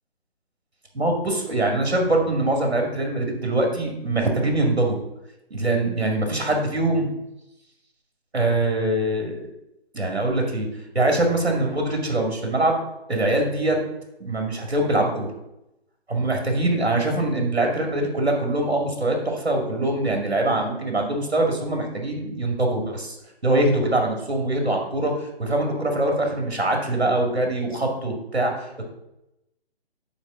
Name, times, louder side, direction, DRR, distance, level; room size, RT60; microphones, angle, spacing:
voice 1, 0.9-5.0 5.5-7.1 8.3-9.4 9.9-10.7 10.9-12.8 13.1-13.8 14.2-15.3 16.1-23.2 23.4-25.1 25.4-28.5, right 2 dB, 85° right, 2 dB, 2.2 m, -23 dB
7.2 x 4.7 x 6.1 m, 0.89 s
figure-of-eight pair, 140°, 31 cm